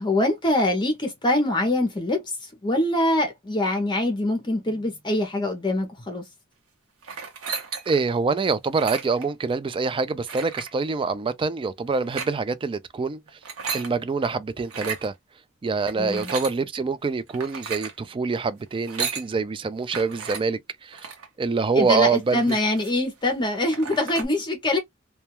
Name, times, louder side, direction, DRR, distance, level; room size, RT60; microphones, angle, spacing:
voice 1, 0.0-6.2 16.0-16.3 21.7-24.8, left 1 dB, 20° left, 0.6 m, -24 dB
sound 1, 7.0-8.1 8.7-9.3 10.3-10.7 11.9-12.3 13.3-13.9 14.6-15.1 15.9-16.6 17.3-17.9 18.7-19.3 19.9-20.4 20.9-21.3 21.8-21.9 22.1-23.0 23.4-23.5 23.7-24.3, right 6 dB, 90° right, 0.8 m, -34 dB
voice 2, 7.9-13.2 13.7-15.1 15.6-21.0 21.4-22.6, right 4 dB, 25° right, 0.3 m, -25 dB
2.2 x 2.2 x 2.9 m
head